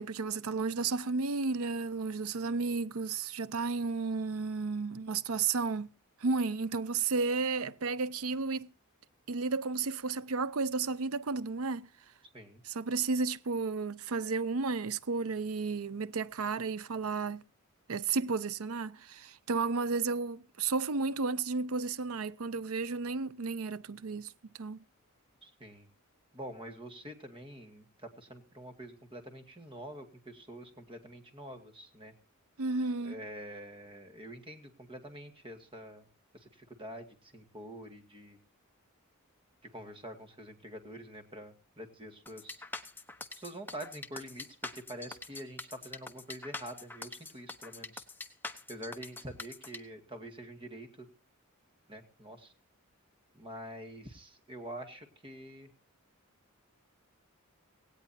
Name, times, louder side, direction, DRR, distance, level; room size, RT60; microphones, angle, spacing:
voice 1, 0.0-5.9 6.2-8.7 9.3-11.9 12.6-17.4 17.9-24.3 24.6-24.8 32.6-33.2, right 4 dB, 75° right, 0.6 m, -33 dB
voice 2, 25.4-25.9 26.3-32.1 33.0-36.1 36.3-38.4 39.6-42.6 43.3-44.5 44.9-48.0 48.7-51.1 51.9-52.5 53.3-55.7, right 1 dB, 25° right, 2.2 m, -46 dB
sound 1, 42.3-49.8, left 3 dB, 10° left, 1.0 m, -43 dB
18.0 x 17.5 x 2.8 m
head